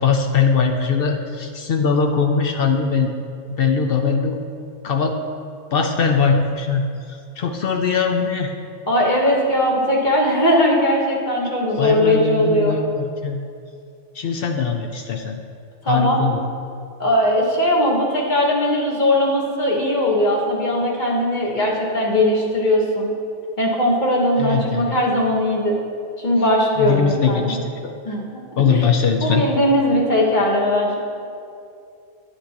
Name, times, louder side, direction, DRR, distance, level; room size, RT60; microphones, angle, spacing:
voice 1, 0.0-3.1 3.5-4.4 4.8-5.2 5.7-8.5 11.8-13.4 14.1-15.4 15.9-16.4 24.4-25.0 26.8-27.9 28.6-29.5, left 5 dB, 60° left, 4 dB, 0.7 m, -21 dB
voice 2, 8.9-12.8 15.8-16.2 17.0-23.1 23.6-25.8 26.2-27.6 28.0-28.3 28.6-28.9 29.2-31.0, left 1 dB, 40° left, -2 dB, 1.3 m, -19 dB
9.4 x 8.5 x 2.9 m, 2.4 s
omnidirectional pair, 1.3 m